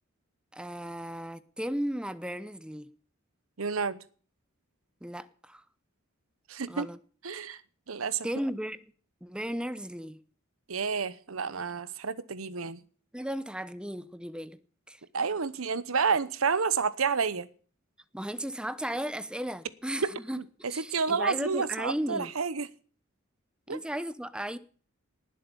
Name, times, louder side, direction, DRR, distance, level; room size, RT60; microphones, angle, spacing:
voice 1, 0.5-2.9 5.0-5.6 6.7-7.0 8.2-8.8 9.2-10.2 13.1-14.6 14.9-15.0 18.1-20.4 20.7-22.3 23.7-24.6, equal, 5° right, 0.7 m, -35 dB
voice 2, 3.6-4.0 6.5-6.9 7.2-7.6 7.9-8.3 10.7-12.8 15.1-17.5 20.0-20.1 20.4-22.7 23.7-23.8, right 5 dB, 80° right, 1.0 m, -30 dB
19.0 x 7.7 x 7.0 m
head